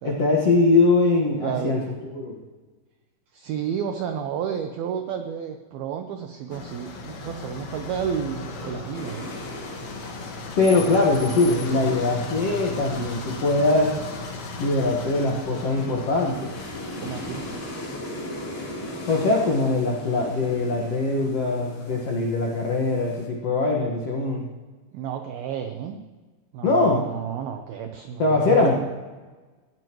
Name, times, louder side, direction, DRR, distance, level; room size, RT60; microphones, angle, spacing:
voice 1, 0.0-1.8 2.1-2.4 10.6-14.1 14.6-16.6 19.1-24.5 26.6-27.0 28.2-28.8, left 3 dB, 80° left, 0 dB, 1.4 m, -22 dB
voice 2, 1.4-1.8 3.3-9.3 10.9-11.0 17.0-17.5 24.9-26.0 26.5-28.8, right 8 dB, 90° right, 6 dB, 2.1 m, -31 dB
sound 1, 6.5-17.6, left 3 dB, 65° left, 1.6 m, -36 dB
sound 2, 8.9-23.3, left 1 dB, 40° left, 4.2 m, -39 dB
20.0 x 16.0 x 3.1 m, 1.3 s
omnidirectional pair, 5.5 m